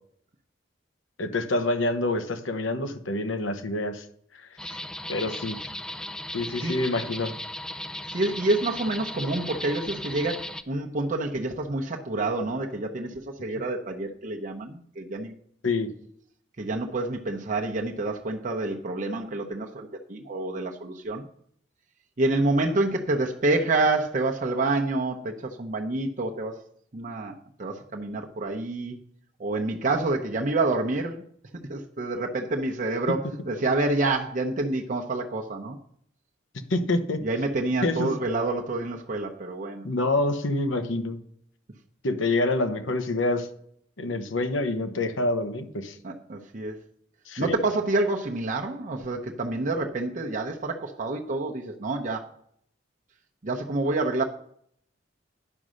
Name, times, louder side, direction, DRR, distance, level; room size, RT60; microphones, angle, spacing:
voice 1, 1.2-4.0 4.6-4.8 5.1-5.7 6.3-7.3 15.6-15.9 36.7-37.2 37.8-38.1 39.8-41.2 42.0-43.5 44.0-46.0 47.3-47.5, left 2 dB, 85° left, 8 dB, 1.0 m, -27 dB
sound 1, 4.6-10.6, left 1 dB, 5° left, 0.3 m, -36 dB
voice 2, 8.1-15.3 16.6-21.2 22.2-26.5 26.9-27.3 27.6-29.0 29.4-31.2 31.7-33.2 33.5-35.8 37.2-39.9 46.0-46.8 47.4-52.2 53.4-54.2, right 2 dB, 40° right, 1 dB, 0.8 m, -28 dB
9.8 x 5.4 x 6.3 m, 0.66 s
head